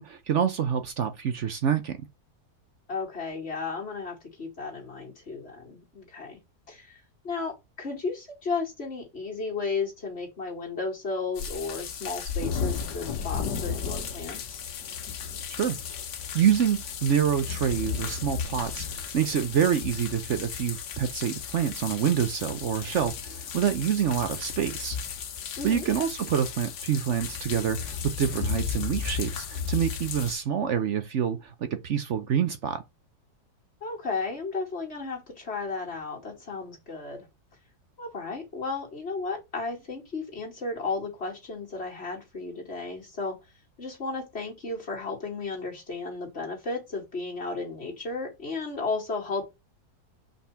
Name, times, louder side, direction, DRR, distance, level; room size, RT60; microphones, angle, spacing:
voice 1, 0.0-2.0 15.5-15.8 16.3-25.0 25.6-32.8, right 8 dB, 60° right, 0.9 m, -27 dB
voice 2, 2.9-6.4 6.7-14.6 25.6-25.9 33.8-37.3 38.0-43.4 43.8-49.5, left 4 dB, 40° left, 3.1 m, -34 dB
sound 1, 11.3-30.3, left 6 dB, 85° left, 1.5 m, -34 dB
5.8 x 4.2 x 5.6 m
omnidirectional pair, 1.7 m